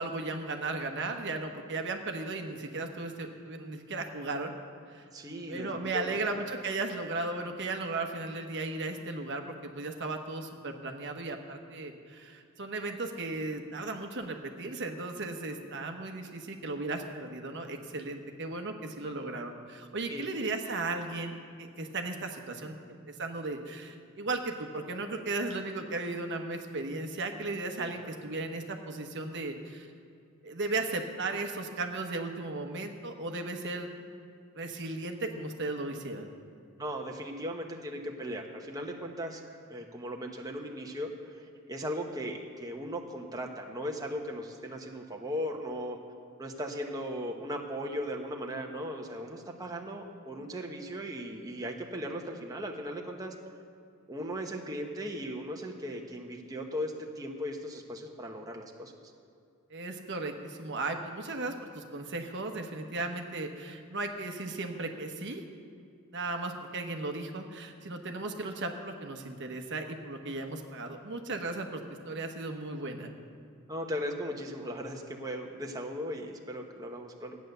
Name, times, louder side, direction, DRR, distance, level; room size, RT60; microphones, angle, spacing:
voice 1, 0.0-4.6 4.9-5.0 5.5-29.9 30.4-33.9 34.5-36.3 59.7-65.4 66.1-73.1, right 3 dB, 55° right, 4 dB, 1.0 m, -36 dB
voice 2, 5.1-6.2 20.1-20.3 27.8-27.9 36.8-39.4 39.7-46.0 46.4-53.3 54.1-58.9 73.7-77.4, equal, 20° right, 1 dB, 1.0 m, -37 dB
13.5 x 9.4 x 6.7 m, 2.4 s
head